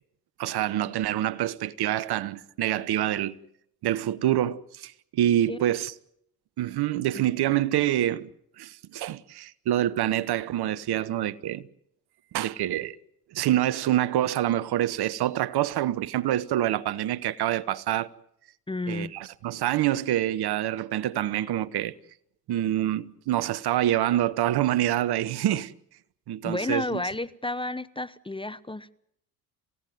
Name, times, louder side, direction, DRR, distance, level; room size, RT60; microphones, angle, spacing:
voice 1, 0.4-3.4 3.8-5.9 6.6-8.3 8.6-11.6 12.3-13.0 13.3-18.1 18.9-21.9 22.5-25.7 26.3-27.0, right 12 dB, 55° right, 1.1 m, -26 dB
voice 2, 18.7-19.2 26.4-28.9, left 2 dB, 10° left, 0.9 m, -31 dB
28.5 x 16.5 x 9.3 m
hypercardioid pair, 55°, 47 cm